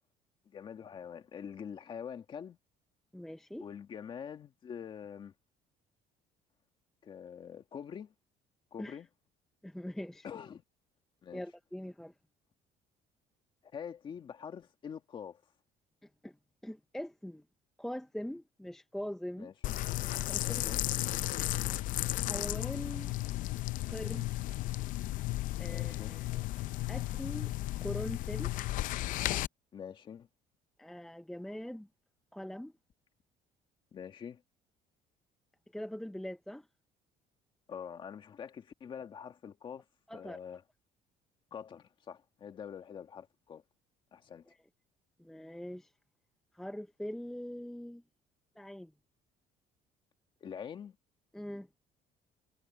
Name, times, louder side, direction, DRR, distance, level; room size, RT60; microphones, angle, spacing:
voice 1, 0.5-2.6 3.6-5.3 7.0-8.1 8.7-9.1 10.2-10.6 11.2-11.4 13.7-15.4 19.4-19.8 20.4-20.8 25.6-26.2 29.7-30.3 33.9-34.4 37.7-39.9 40.1-40.6 41.5-43.6 44.1-44.5 50.4-51.0, left 7 dB, 30° left, 2.0 m, -45 dB
voice 2, 3.1-3.6 8.8-9.0 9.6-10.3 11.3-12.1 16.2-16.4 16.6-17.4 17.8-19.5 20.3-20.6 22.1-23.2 23.9-24.3 25.6-26.4 26.9-27.5 27.8-28.5 30.8-31.9 32.3-32.7 35.7-36.7 40.1-40.4 44.5-44.6 45.2-45.9 46.5-48.0 48.6-48.9 51.3-51.7, equal, 5° left, 0.6 m, -42 dB
sound 1, 19.6-29.5, left 16 dB, 60° left, 0.5 m, -34 dB
cardioid pair, 170°, 16 cm